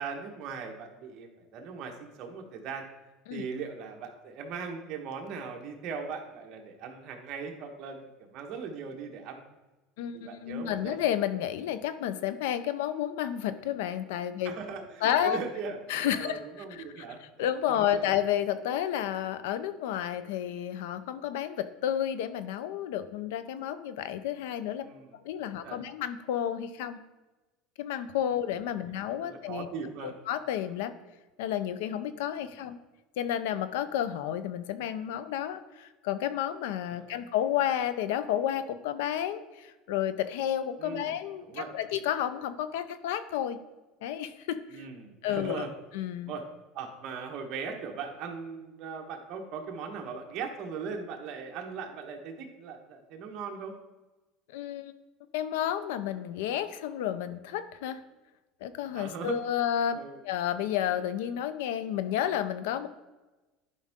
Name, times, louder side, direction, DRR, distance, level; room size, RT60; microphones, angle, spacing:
voice 1, 0.0-2.8 3.3-8.0 8.3-9.4 10.1-11.0 14.4-18.1 24.7-25.1 25.6-25.8 28.7-28.8 29.2-30.1 32.4-32.6 40.8-41.1 41.4-41.7 44.7-45.7 46.2-46.4 46.7-53.7 58.9-59.4 59.9-60.2, right 5 dB, 45° right, 2 dB, 1.3 m, -39 dB
voice 2, 10.0-14.5 15.0-15.4 15.9-16.4 16.7-17.0 17.4-24.9 25.2-27.0 27.8-29.7 30.0-30.9 31.4-32.8 33.2-43.6 44.0-44.8 45.2-45.7 45.9-46.3 54.5-54.9 55.3-58.0 58.6-60.0 60.2-62.9, left 10 dB, 85° left, 13 dB, 0.6 m, -31 dB
11.0 x 5.4 x 3.6 m, 1.1 s
cardioid pair, 155°, 0 cm